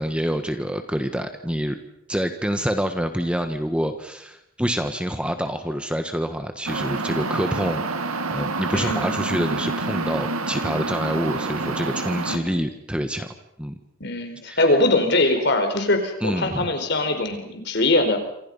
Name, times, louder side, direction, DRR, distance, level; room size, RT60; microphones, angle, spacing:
voice 1, 0.0-1.8 2.1-13.3 13.6-13.7 14.5-14.6 16.2-16.7, equal, 5° right, 7 dB, 1.4 m, -27 dB
sound 1, 6.7-12.4, right 3 dB, 85° right, 2.2 m, -27 dB
voice 2, 8.7-9.1 12.3-12.7 14.0-18.2, left 2 dB, 50° left, 6 dB, 4.6 m, -22 dB
28.0 x 26.5 x 5.5 m, 0.77 s
head